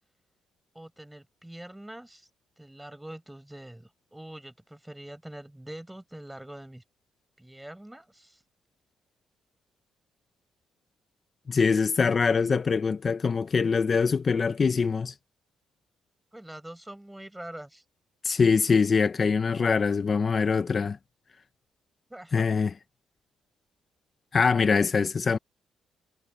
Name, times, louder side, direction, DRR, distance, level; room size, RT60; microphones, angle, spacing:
voice 1, 0.7-2.3 2.6-6.8 7.4-8.4 16.3-17.8 22.1-22.5, right 1 dB, 5° right, 4.7 m, -44 dB
voice 2, 11.5-15.1 18.2-21.0 22.3-22.7 24.3-25.4, left 5 dB, 40° left, 0.6 m, -23 dB
cardioid pair, 90°, 0 cm